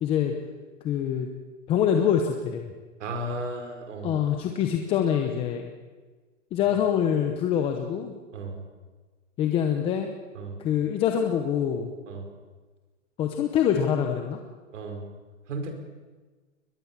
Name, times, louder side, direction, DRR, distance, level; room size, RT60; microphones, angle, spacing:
voice 1, 0.0-0.3 0.8-1.3 1.7-2.7 4.0-5.7 6.5-8.1 9.4-10.1 10.6-11.9 13.2-14.4, left 9 dB, 15° left, 4 dB, 0.8 m, -25 dB
voice 2, 3.0-4.2 8.3-8.6 10.3-10.6 12.1-12.2 14.7-15.0 15.5-15.7, right 2 dB, 70° right, 5 dB, 5.1 m, -34 dB
22.0 x 21.0 x 7.4 m, 1.4 s
hypercardioid pair, 165°, 39 cm